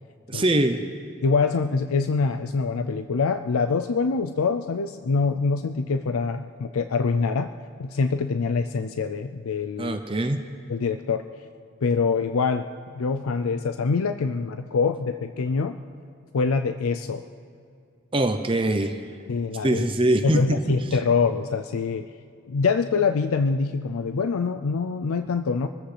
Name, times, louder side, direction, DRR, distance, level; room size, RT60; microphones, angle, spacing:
voice 1, 0.3-0.8 9.8-10.4 18.1-19.0 19.6-20.6, right 1 dB, 25° right, 7 dB, 0.6 m, -22 dB
voice 2, 1.2-7.5 7.8-10.0 10.7-11.2 11.8-12.7 12.9-15.8 16.3-17.2 19.3-19.9 20.2-22.1 22.5-25.7, left 4 dB, 90° left, 9 dB, 0.5 m, -24 dB
26.0 x 14.0 x 3.4 m, 2.3 s
head